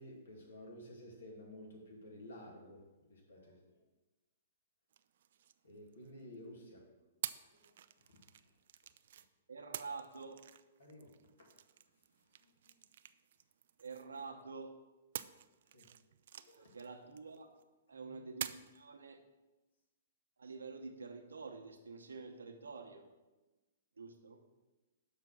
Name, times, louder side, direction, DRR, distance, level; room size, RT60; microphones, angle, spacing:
voice 1, 0.0-2.8 3.1-3.6 5.6-6.8 7.6-7.8 8.1-8.2 10.8-11.1 12.4-12.5 15.7-15.9 16.3-16.7 17.9-18.1, left 1 dB, 80° left, -1 dB, 2.4 m, -53 dB
sound 1, 4.9-6.4 7.2-9.3 9.7-14.4 15.1-17.6 18.4-18.8, right 9 dB, 65° right, 0.3 m, -49 dB
voice 2, 9.5-10.4 13.8-14.8 16.5-17.5 17.9-19.2 20.4-23.0 24.0-24.4, right 4 dB, 85° right, 4 dB, 1.0 m, -48 dB
6.5 x 4.7 x 6.2 m, 1.1 s
hypercardioid pair, 125°, 0 cm